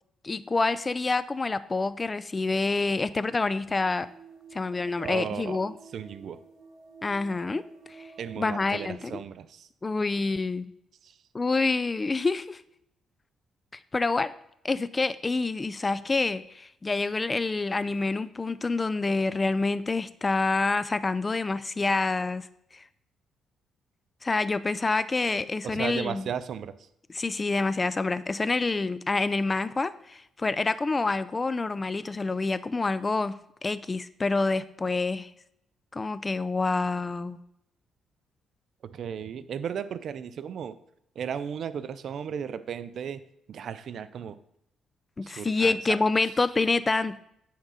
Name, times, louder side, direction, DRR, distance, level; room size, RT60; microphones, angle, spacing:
voice 1, 0.2-4.1 4.5-5.7 7.0-7.6 7.9-8.0 8.4-9.2 9.8-10.7 11.3-12.6 13.9-14.3 14.6-22.5 22.7-22.8 24.2-26.3 27.1-35.3 35.9-37.4 45.2-47.2, left 3 dB, 25° left, 15 dB, 0.4 m, -27 dB
sound 1, 3.6-8.9, right 5 dB, 80° right, 2.0 m, -50 dB
voice 2, 5.0-5.6 5.9-6.4 8.2-9.7 11.0-11.2 25.6-26.9 38.8-40.8 41.2-44.4 45.2-46.3, right 8 dB, 60° right, 14 dB, 0.5 m, -35 dB
8.8 x 3.7 x 5.5 m, 0.76 s
cardioid pair, 90°, 0 cm